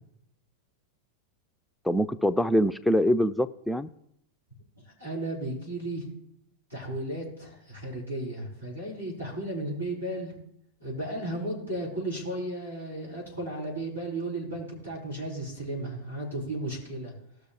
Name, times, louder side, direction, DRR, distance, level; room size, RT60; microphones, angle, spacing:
voice 1, 1.8-3.9, equal, ahead, 10 dB, 0.4 m, -24 dB
voice 2, 4.8-6.1 6.7-10.3 10.8-17.1, right 1 dB, 85° right, -5 dB, 5.3 m, -34 dB
19.0 x 6.5 x 3.4 m, 0.75 s
figure-of-eight pair, 90°, 0 cm